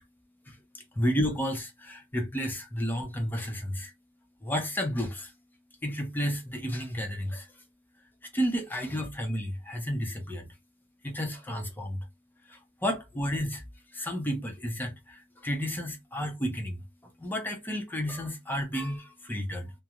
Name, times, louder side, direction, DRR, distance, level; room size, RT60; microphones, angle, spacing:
voice 1, 0.5-3.9 4.4-5.3 5.8-7.5 8.3-10.5 11.0-12.0 12.5-13.6 13.9-16.8 17.2-19.7, equal, 10° left, 0.6 m, -32 dB
2.4 x 2.1 x 2.9 m
head